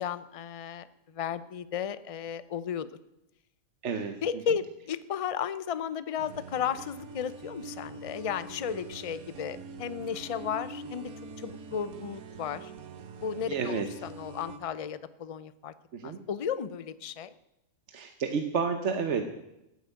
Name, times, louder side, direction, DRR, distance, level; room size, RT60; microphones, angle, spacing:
voice 1, 0.0-2.9 4.2-11.1 11.4-12.7 13.2-15.7 16.0-17.3, left 8 dB, 55° left, 14 dB, 0.3 m, -34 dB
voice 2, 3.8-4.2 13.5-13.9 15.9-16.2 17.9-19.2, right 6 dB, 55° right, 7 dB, 1.2 m, -30 dB
sound 1, 6.2-14.6, right 3 dB, 80° right, 1.5 m, -44 dB
14.0 x 8.2 x 9.1 m, 0.90 s
omnidirectional pair, 1.5 m